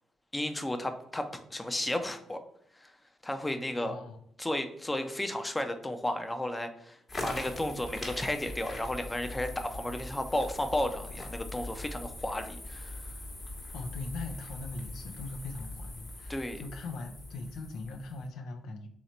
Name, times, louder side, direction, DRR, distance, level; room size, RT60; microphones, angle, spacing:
voice 1, 0.3-2.4 2.8-2.9 3.2-4.0 4.4-13.0 16.3-16.6, left 1 dB, 15° left, 7 dB, 0.6 m, -33 dB
voice 2, 3.8-4.2 13.7-18.9, left 3 dB, 70° left, 4 dB, 0.4 m, -40 dB
sound 1, 7.1-18.3, left 2 dB, 35° left, 1.2 m, -42 dB
3.2 x 2.9 x 3.8 m, 0.73 s
hypercardioid pair, 45°, 0 cm